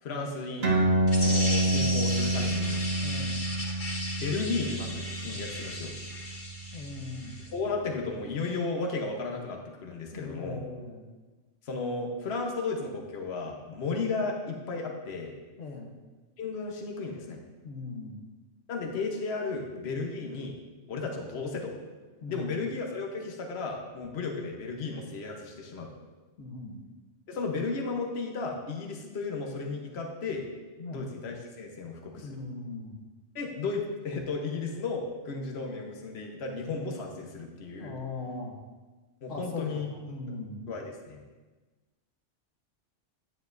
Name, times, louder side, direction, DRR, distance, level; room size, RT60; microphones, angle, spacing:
voice 1, 0.0-0.7 1.2-2.8 4.2-5.9 7.5-10.6 11.6-15.3 16.4-17.4 18.7-20.6 20.9-21.7 22.3-25.9 27.3-30.5 30.9-32.3 33.3-38.0 39.2-39.9 40.7-41.2, left 4 dB, 60° left, 1 dB, 1.2 m, -34 dB
sound 1, 0.6-7.5, right 1 dB, 55° right, 1.5 m, -28 dB
sound 2, 1.1-7.5, left 1 dB, 40° left, 1.3 m, -36 dB
voice 2, 3.0-3.5 6.7-7.4 10.1-11.1 15.6-16.0 17.6-18.2 22.2-22.6 26.4-26.8 30.8-31.1 32.2-33.0 37.8-38.6 39.3-40.7, left 2 dB, 90° left, 1 dB, 1.5 m, -39 dB
9.7 x 9.4 x 2.6 m, 1.2 s
omnidirectional pair, 1.3 m